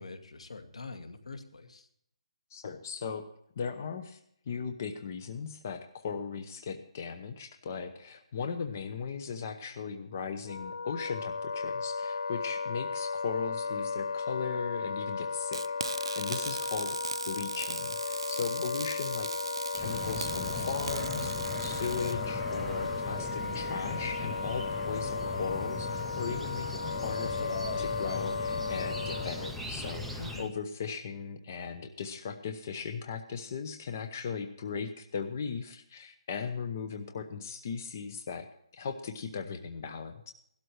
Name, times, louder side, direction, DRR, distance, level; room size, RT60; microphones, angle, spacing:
voice 1, 0.0-1.9 18.5-18.7 30.2-30.5, left 3 dB, 85° left, 7 dB, 2.2 m, -44 dB
voice 2, 2.5-3.3 3.6-4.2 4.5-17.0 17.3-19.3 19.7-38.5 38.7-40.3, left 6 dB, 25° left, 7 dB, 0.8 m, -38 dB
Wind instrument woodwind instrument, 10.4-29.6, left 5 dB, 55° left, 0.4 m, -35 dB
sound 1, 15.5-22.2, right 5 dB, 55° right, 0.4 m, -39 dB
sound 2, 19.7-30.5, left 1 dB, ahead, 0.5 m, -39 dB
17.0 x 12.5 x 3.2 m, 0.69 s
hypercardioid pair, 175°, 3 cm